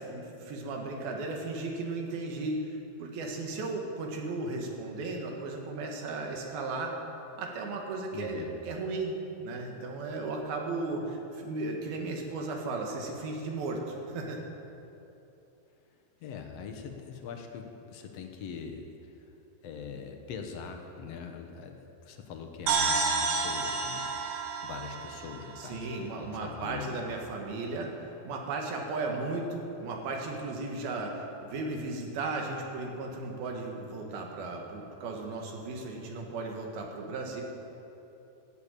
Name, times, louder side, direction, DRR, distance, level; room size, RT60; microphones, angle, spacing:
voice 1, 0.0-6.9 7.4-9.2 9.4-14.4 25.6-27.9 28.2-37.4, right 3 dB, 80° right, 1 dB, 3.6 m, -35 dB
voice 2, 8.1-8.5 16.2-19.1 19.6-21.8 22.0-24.4 24.6-27.0, left 6 dB, 65° left, 4 dB, 1.7 m, -42 dB
sound 1, 22.7-26.3, right 4 dB, 65° right, 1.5 m, -30 dB
14.5 x 8.5 x 9.1 m, 2.9 s
omnidirectional pair, 4.2 m